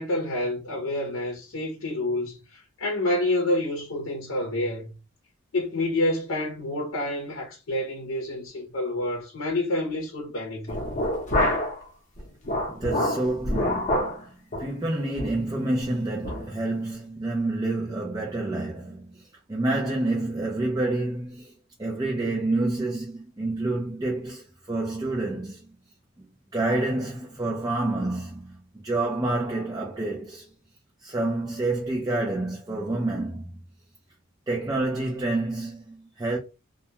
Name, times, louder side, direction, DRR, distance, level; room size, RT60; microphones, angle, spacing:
voice 1, 0.0-4.9 5.5-10.8, left 1 dB, 70° left, 0.7 m, -28 dB
sound 1, 10.7-11.8 12.2-14.2 14.5-14.7 15.2-15.4 15.8-15.9 16.2-16.4, left 1 dB, 35° left, 0.7 m, -26 dB
voice 2, 12.7-21.5 21.8-25.7 26.2-26.3 26.5-30.5 31.0-33.6 34.5-36.4, right 2 dB, 20° right, 0.4 m, -28 dB
2.2 x 2.2 x 2.8 m
head